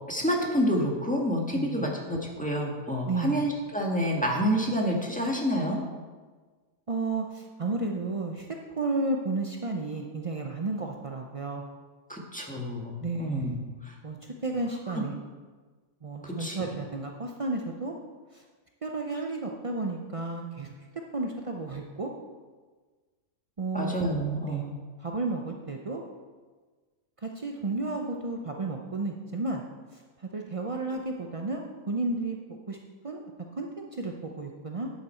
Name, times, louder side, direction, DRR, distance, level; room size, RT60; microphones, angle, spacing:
voice 1, 0.1-5.8 12.1-13.5 13.9-14.0 16.2-16.7 23.7-24.7, equal, 5° left, -1 dB, 1.4 m, -28 dB
voice 2, 1.5-1.9 3.0-3.4 6.9-8.5 8.8-11.6 13.0-13.6 14.0-14.2 14.4-15.2 16.0-17.9 18.8-20.7 21.1-22.1 23.6-24.0 24.4-24.6 25.0-26.0 27.2-29.6 30.3-31.6 31.9-32.8 33.0-33.2 33.6-34.9, right 3 dB, 60° right, 1 dB, 0.3 m, -32 dB
11.0 x 8.4 x 4.4 m, 1.4 s
omnidirectional pair, 1.7 m